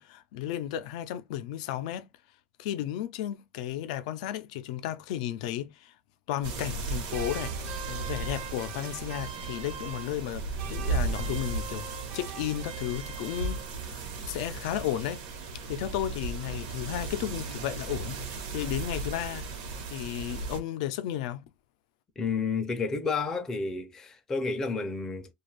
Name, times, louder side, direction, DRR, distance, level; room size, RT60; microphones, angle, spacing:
voice 1, 0.0-2.1 2.6-5.9 6.3-15.2 15.7-18.2 18.5-19.5 19.9-21.4, left 12 dB, 85° left, 0.4 m, -34 dB
sound 1, 6.4-20.6, right 4 dB, 85° right, 0.9 m, -36 dB
sound 2, 7.1-10.3 10.6-14.0, right 7 dB, 55° right, 0.4 m, -43 dB
voice 2, 22.2-25.3, left 4 dB, 15° left, 0.4 m, -30 dB
2.5 x 2.3 x 3.1 m
cardioid pair, 175°, 4 cm